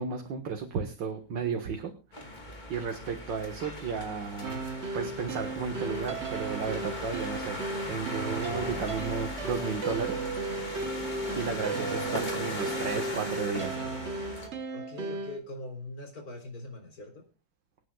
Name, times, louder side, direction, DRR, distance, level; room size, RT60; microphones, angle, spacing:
voice 1, 0.0-1.9 2.2-4.6 4.9-7.6 7.9-10.2 11.3-13.8, right 5 dB, 85° right, 5 dB, 2.2 m, -33 dB
sound 1, 2.1-14.5, left 1 dB, 25° left, 2.4 m, -38 dB
sound 2, 4.4-15.4, right 3 dB, 45° right, 1.3 m, -35 dB
voice 2, 14.7-17.3, left 2 dB, 55° left, 3 dB, 4.2 m, -42 dB
25.5 x 9.1 x 2.3 m, 0.31 s
omnidirectional pair, 1.9 m